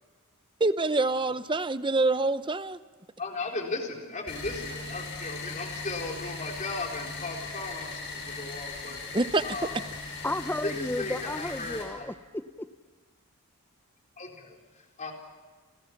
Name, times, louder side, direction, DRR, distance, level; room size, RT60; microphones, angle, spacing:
voice 1, 0.6-2.8 9.1-9.4, right 2 dB, 20° right, 13 dB, 0.8 m, -26 dB
voice 2, 3.2-9.0 9.4-9.9 10.6-12.1 14.2-15.1, left 3 dB, 35° left, 1 dB, 4.1 m, -36 dB
sound 1, 4.3-11.8, left 3 dB, 55° left, 7.6 m, -38 dB
voice 3, 10.2-12.7, left 1 dB, 10° left, 11 dB, 0.8 m, -33 dB
30.0 x 27.0 x 5.9 m, 1.4 s
head